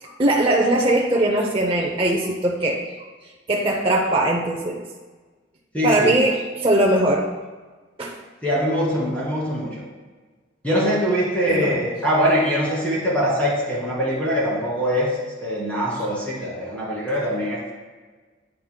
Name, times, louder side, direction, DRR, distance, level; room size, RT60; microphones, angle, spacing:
voice 1, 0.2-2.8 3.5-4.8 5.8-7.3 8.0-8.2 11.5-11.8, right 1 dB, 30° right, 0 dB, 0.6 m, -20 dB
voice 2, 5.7-6.1 8.4-9.7 10.6-15.1 15.4-17.7, equal, 10° left, -5 dB, 2.2 m, -22 dB
9.6 x 8.7 x 2.2 m, 1.3 s
head